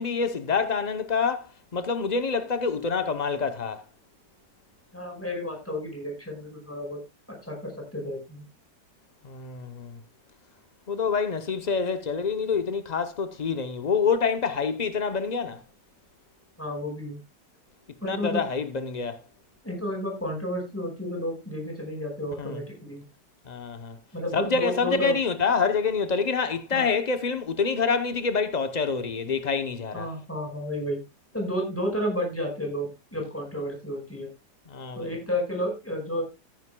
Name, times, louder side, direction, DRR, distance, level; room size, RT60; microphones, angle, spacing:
voice 1, 0.0-3.8 9.2-10.0 10.9-15.6 18.0-19.2 22.4-22.6 23.5-24.0 24.3-30.1 34.7-35.1, left 5 dB, 80° left, 0.3 m, -27 dB
voice 2, 4.9-7.0 7.3-8.4 16.6-17.2 18.0-18.4 19.6-23.0 24.1-25.2 26.7-26.9 29.9-31.0 31.3-34.3 34.9-36.2, left 1 dB, 5° left, 4.9 m, -31 dB
14.0 x 10.5 x 2.2 m
omnidirectional pair, 2.0 m